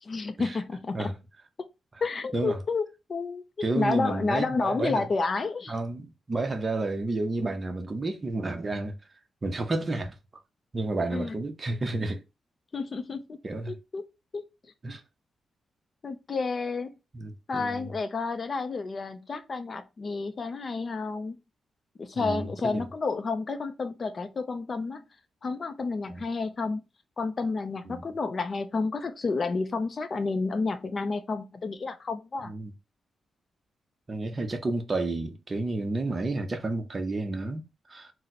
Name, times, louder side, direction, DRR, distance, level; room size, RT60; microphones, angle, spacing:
voice 1, 0.0-1.1 1.6-1.7 2.0-3.4 3.7-5.7 11.1-11.4 12.7-13.4 13.7-14.0 14.3-14.4 16.0-16.9 17.5-21.4 22.0-25.0 25.4-26.8 27.2-32.5, left 4 dB, 35° left, 0.4 m, -30 dB
voice 2, 3.6-5.0 5.7-9.0 9.4-10.2 10.7-12.2 13.4-13.7 14.8-15.0 17.1-17.9 22.1-22.9 26.1-26.2 27.9-28.0 32.5-32.7 34.1-38.1, right 2 dB, 30° right, 0.6 m, -31 dB
2.8 x 2.0 x 4.0 m
wide cardioid pair, 135°, 0 cm